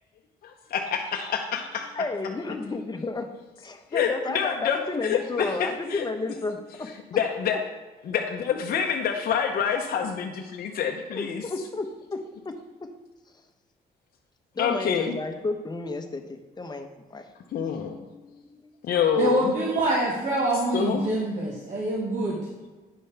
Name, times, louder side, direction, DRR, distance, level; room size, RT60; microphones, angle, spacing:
voice 1, 0.4-1.9 3.9-6.1 7.1-7.6 8.0-11.4 14.6-15.2 17.5-18.0 18.8-19.5 20.7-21.1, left 7 dB, 65° left, 2 dB, 0.7 m, -27 dB
voice 2, 1.9-3.3 3.6-6.9 11.1-12.9 14.5-17.3 17.6-18.7, left 3 dB, 25° left, 5 dB, 0.9 m, -33 dB
voice 3, 19.2-22.4, right 2 dB, 50° right, -4 dB, 1.5 m, -25 dB
8.9 x 5.4 x 3.4 m, 1.3 s
supercardioid pair, 70°, 17 cm